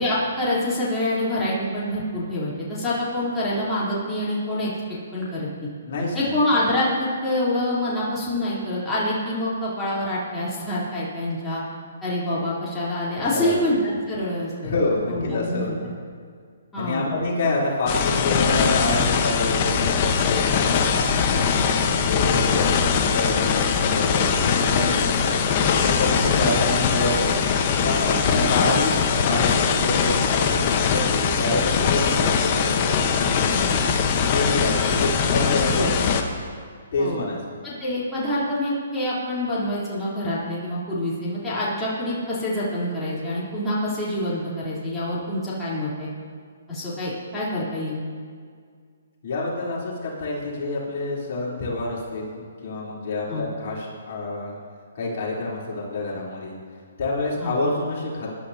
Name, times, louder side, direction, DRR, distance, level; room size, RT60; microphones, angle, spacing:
voice 1, 0.0-5.5 6.1-11.6 12.0-14.7 15.1-15.7 16.7-17.2 26.1-26.4 28.0-28.5 33.5-33.8 35.6-35.9 37.0-37.2 37.6-46.1 46.7-48.0 53.3-53.5 57.4-57.5, left 1 dB, 10° left, -10 dB, 3.6 m, -26 dB
voice 2, 5.8-6.4 13.2-13.7 14.6-15.9 16.8-27.4 27.8-33.3 34.1-35.9 36.9-37.4 49.2-54.6 55.0-56.6 57.0-58.3, left 2 dB, 55° left, -5 dB, 3.6 m, -27 dB
sound 1, 17.9-36.2, left 6 dB, 35° left, 1.1 m, -21 dB
22.0 x 11.5 x 2.9 m, 2.1 s
hypercardioid pair, 150°, 0 cm